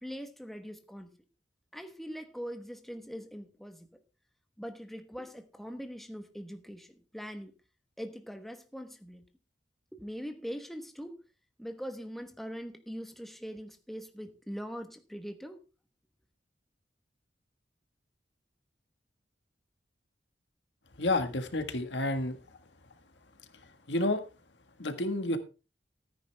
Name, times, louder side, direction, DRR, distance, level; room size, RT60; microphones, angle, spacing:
voice 1, 0.0-1.2 1.7-4.0 4.6-7.5 8.0-9.3 9.9-11.2 11.6-15.6, equal, ahead, 1.2 m, -42 dB
voice 2, 21.0-22.4 23.9-24.2 24.8-25.4, left 2 dB, 75° left, 1.6 m, -30 dB
14.5 x 9.7 x 3.4 m
head